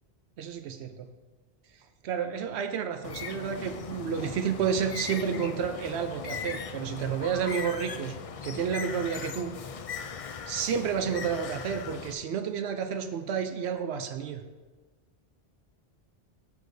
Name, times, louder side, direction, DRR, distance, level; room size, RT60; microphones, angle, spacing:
voice 1, 0.4-0.9 2.0-8.2 8.4-9.5 10.5-14.4, right 7 dB, 85° right, 7 dB, 0.9 m, -30 dB
Bird, 3.0-12.1, left 6 dB, 55° left, 0.4 m, -39 dB
13.0 x 6.4 x 2.7 m, 1.3 s
omnidirectional pair, 1.1 m